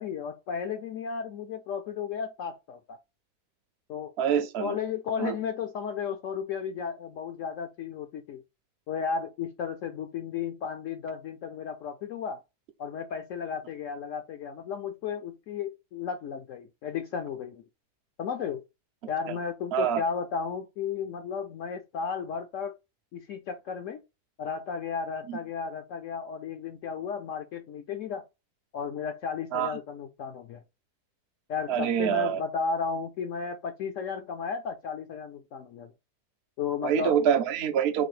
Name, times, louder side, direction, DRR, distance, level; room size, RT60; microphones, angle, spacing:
voice 1, 0.0-3.0 3.9-4.1 4.6-8.4 8.9-12.4 12.8-17.6 18.2-18.6 19.1-22.7 23.1-24.0 24.4-28.2 28.7-30.6 31.5-35.9 36.6-37.1, left 6 dB, 70° left, 0.8 m, -34 dB
voice 2, 4.2-4.7 5.2-5.3 19.7-20.0 25.3-25.4 29.5-29.7 31.7-32.4 36.8-38.0, right 8 dB, 60° right, 0.6 m, -25 dB
4.0 x 2.6 x 3.2 m
omnidirectional pair, 1.7 m